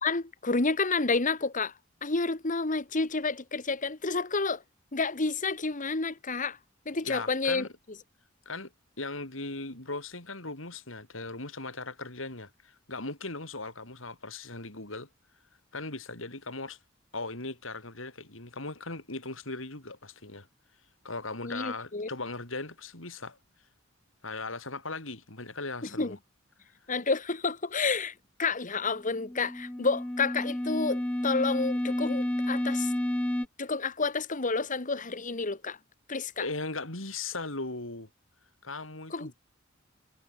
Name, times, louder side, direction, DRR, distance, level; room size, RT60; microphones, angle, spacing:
voice 1, 0.0-1.7 2.0-4.6 4.9-6.6 6.8-7.6 21.4-22.1 26.0-26.2 26.9-28.1 28.4-32.9 33.6-35.8 36.1-36.4 39.1-39.3, left 4 dB, 40° left, 1.6 m, -30 dB
voice 2, 6.9-7.7 8.5-8.7 9.0-15.1 15.7-16.8 17.1-20.5 21.0-23.4 24.2-26.2 36.4-38.1 38.6-39.3, left 3 dB, 80° left, 5.8 m, -38 dB
sound 1, 29.1-33.5, left 1 dB, 5° left, 0.4 m, -30 dB
head